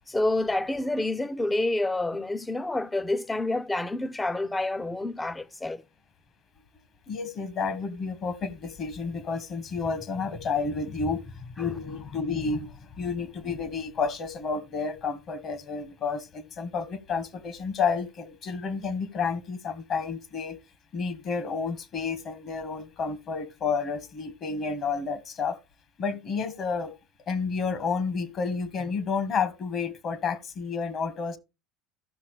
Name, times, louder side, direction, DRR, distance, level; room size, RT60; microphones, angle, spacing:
voice 1, 0.1-5.8 11.6-11.7, left 2 dB, 15° left, 0.6 m, -28 dB
voice 2, 7.1-20.6 20.9-25.6 26.0-26.9 27.3-31.4, left 5 dB, 45° left, 1.5 m, -30 dB
15.0 x 5.9 x 3.2 m
hypercardioid pair, 85°, 0 cm